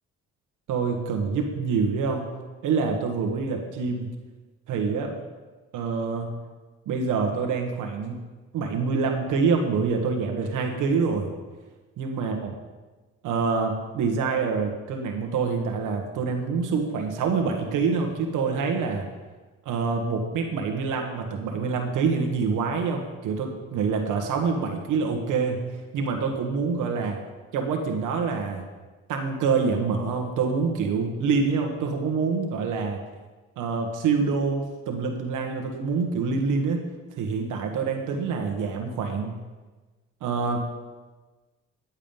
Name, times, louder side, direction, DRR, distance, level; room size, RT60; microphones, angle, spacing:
voice 1, 0.7-2.3 2.6-4.1 4.7-5.1 5.7-6.3 6.9-8.2 8.5-11.3 12.0-12.5 13.2-19.1 19.6-25.6 25.9-27.2 27.5-28.6 29.1-33.0 33.6-36.8 37.2-39.3 40.2-40.7, right 5 dB, 90° right, 3 dB, 1.4 m, -26 dB
10.5 x 7.3 x 5.5 m, 1.3 s
cardioid pair, 90°, 30 cm